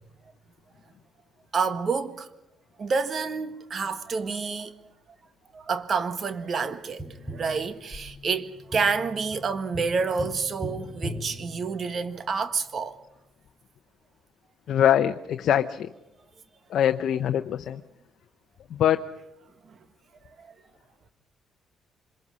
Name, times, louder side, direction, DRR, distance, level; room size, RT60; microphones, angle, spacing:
voice 1, 1.5-2.3 2.8-4.8 5.5-7.0 7.3-13.0 19.7-19.8 20.4-20.5, right 5 dB, 50° right, 1.6 m, -28 dB
Tap, 7.0-12.3 14.9-15.0, equal, ahead, 4.0 m, -39 dB
voice 2, 14.7-15.9 16.7-17.8 18.7-19.0, left 10 dB, 70° left, 0.7 m, -23 dB
26.0 x 22.5 x 6.4 m
cardioid pair, 90°, 0 cm